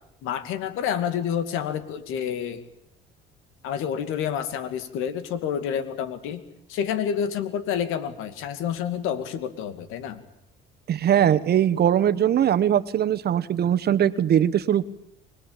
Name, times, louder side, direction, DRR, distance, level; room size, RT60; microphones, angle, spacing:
voice 1, 0.2-2.6 3.6-6.4 6.7-10.2, left 8 dB, 80° left, 11 dB, 2.5 m, -28 dB
voice 2, 10.9-14.9, right 10 dB, 50° right, 14 dB, 1.2 m, -21 dB
24.5 x 19.0 x 9.0 m, 0.78 s
supercardioid pair, 85°, 21 cm